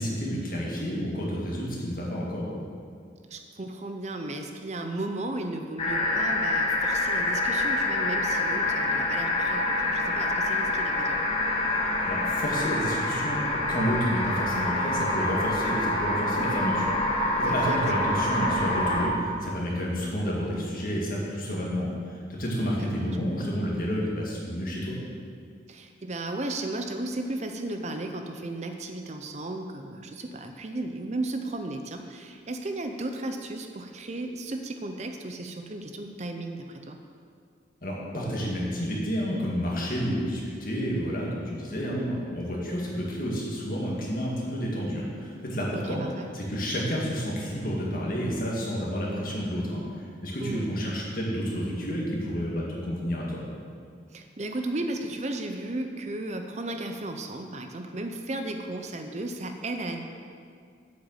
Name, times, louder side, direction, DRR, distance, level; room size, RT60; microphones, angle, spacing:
voice 1, 0.0-2.5 12.1-13.4 13.7-24.9 37.8-46.0 46.3-53.4, equal, 50° left, -4 dB, 2.1 m, -30 dB
voice 2, 3.3-11.2 17.5-17.8 22.8-22.9 25.7-37.0 45.7-46.3 50.4-50.7 54.1-60.0, right 2 dB, 35° right, 5 dB, 0.6 m, -35 dB
sound 1, 5.8-19.1, left 2 dB, 30° left, 1.2 m, -26 dB
8.1 x 6.5 x 7.3 m, 2.2 s
head